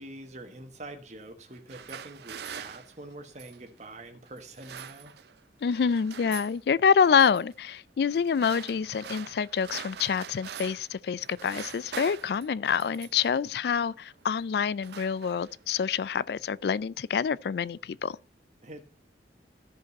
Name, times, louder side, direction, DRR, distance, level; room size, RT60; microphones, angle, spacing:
voice 1, 0.0-5.1 18.6-18.8, right 1 dB, 40° right, 1.4 m, -45 dB
sound 1, 1.5-3.7 4.4-5.4 5.7-6.6 7.0-7.4 8.1-10.9 11.2-13.3 14.1-14.3 14.6-15.7, right 8 dB, 65° right, 0.4 m, -44 dB
voice 2, 5.6-18.2, left 6 dB, 60° left, 0.3 m, -27 dB
13.5 x 5.2 x 4.0 m
head